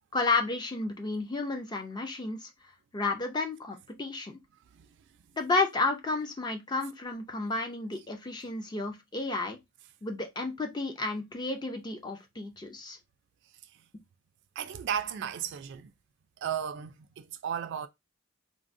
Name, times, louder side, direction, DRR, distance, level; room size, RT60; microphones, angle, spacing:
voice 1, 0.1-2.5 2.9-4.4 5.4-9.6 10.0-13.0, left 3 dB, 20° left, 0.4 m, -32 dB
voice 2, 14.6-15.9 16.4-17.9, right 8 dB, 55° right, 0.3 m, -34 dB
3.4 x 2.0 x 2.5 m
head